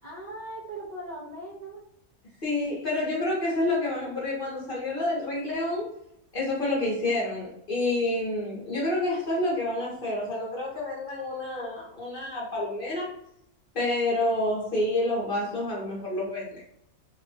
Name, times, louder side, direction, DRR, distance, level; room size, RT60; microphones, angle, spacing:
voice 1, 0.0-1.8, right 1 dB, 55° right, -5 dB, 0.4 m, -39 dB
voice 2, 2.4-5.9 6.3-13.1 13.7-16.6, left 2 dB, 45° left, -4 dB, 0.8 m, -28 dB
2.9 x 2.1 x 2.6 m, 0.74 s
omnidirectional pair, 1.5 m